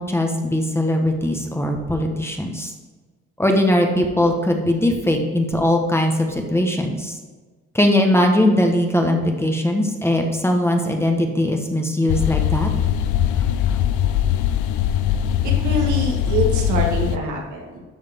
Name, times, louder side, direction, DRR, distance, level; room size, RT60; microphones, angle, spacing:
voice 1, 0.0-2.7 3.4-7.2 7.7-12.7, left 1 dB, 10° left, 2 dB, 1.2 m, -20 dB
sound 1, 12.1-17.2, left 10 dB, 80° left, 0.6 m, -21 dB
voice 2, 15.4-17.8, right 1 dB, 75° right, 0 dB, 2.0 m, -25 dB
13.0 x 4.8 x 3.6 m, 1.3 s
cardioid pair, 90°, 30 cm